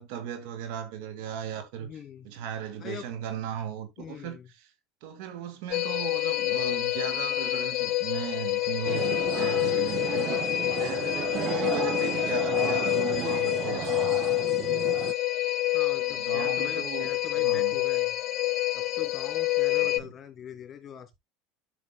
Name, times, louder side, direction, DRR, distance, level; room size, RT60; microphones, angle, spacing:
voice 1, 0.0-1.9 2.2-4.4 5.0-14.1 16.0-17.8 19.8-20.1, right 9 dB, 70° right, 2.1 m, -37 dB
voice 2, 1.8-2.3 2.8-3.1 4.0-4.5 15.7-18.1 18.7-21.2, left 8 dB, 40° left, 2.6 m, -42 dB
sound 1, 5.7-20.0, left 16 dB, 55° left, 0.6 m, -27 dB
sound 2, 8.9-15.1, right 12 dB, 50° right, 0.6 m, -34 dB
12.5 x 6.0 x 2.2 m
hypercardioid pair, 80°, 0 cm